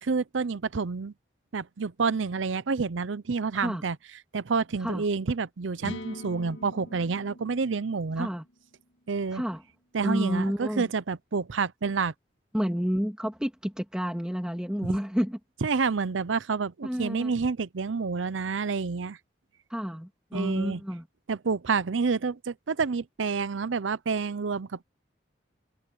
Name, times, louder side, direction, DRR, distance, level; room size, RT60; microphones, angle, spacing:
voice 1, 0.0-1.1 1.5-4.0 4.3-8.3 9.1-9.4 9.9-12.1 14.8-15.0 15.6-19.2 20.3-20.8 21.3-24.8, right 5 dB, 90° right, 0.6 m, -28 dB
sound 1, 5.8-9.6, left 1 dB, 85° left, 2.0 m, -43 dB
voice 2, 9.3-9.6 10.0-10.9 12.5-15.4 16.8-17.3 19.7-21.1, equal, 5° right, 1.9 m, -30 dB
head